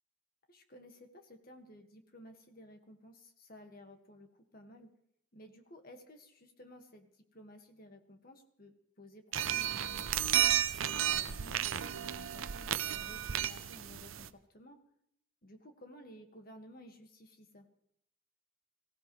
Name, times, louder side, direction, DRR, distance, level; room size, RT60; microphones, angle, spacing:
voice 1, 0.5-4.9 5.3-10.5 10.8-14.8 15.4-17.6, equal, 45° left, 5 dB, 1.8 m, -55 dB
sound 1, 9.3-14.3, right 10 dB, 85° right, 0.6 m, -33 dB
23.0 x 16.0 x 3.2 m, 0.72 s
head